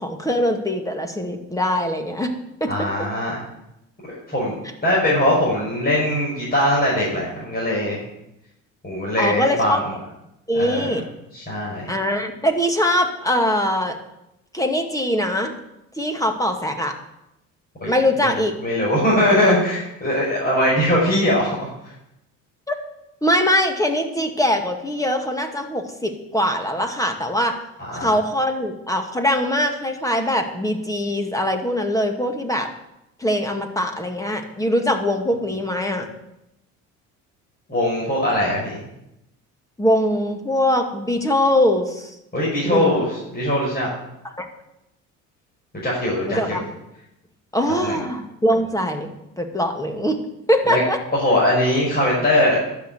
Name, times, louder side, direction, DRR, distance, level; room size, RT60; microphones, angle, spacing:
voice 1, 0.0-2.3 2.6-3.1 9.2-9.8 10.5-11.0 11.9-14.0 14.5-15.5 16.0-16.9 17.9-18.5 20.6-20.7 22.7-22.8 23.2-27.5 27.9-32.7 33.2-36.1 39.8-42.1 42.6-43.0 44.4-44.5 46.3-46.6 47.5-50.2 50.5-51.0, equal, 10° left, 4 dB, 2.3 m, -22 dB
voice 2, 2.7-3.4 4.1-4.5 4.8-8.0 8.8-9.8 10.5-10.9 11.3-11.9 17.8-17.9 18.2-21.7 27.9-28.2 37.7-38.8 42.3-43.1 43.3-43.9 45.8-46.6 47.8-48.0 50.7-50.8 51.2-52.6, left 1 dB, 25° left, -5 dB, 5.8 m, -21 dB
12.0 x 6.7 x 9.5 m, 0.87 s
hypercardioid pair, 70°, 37 cm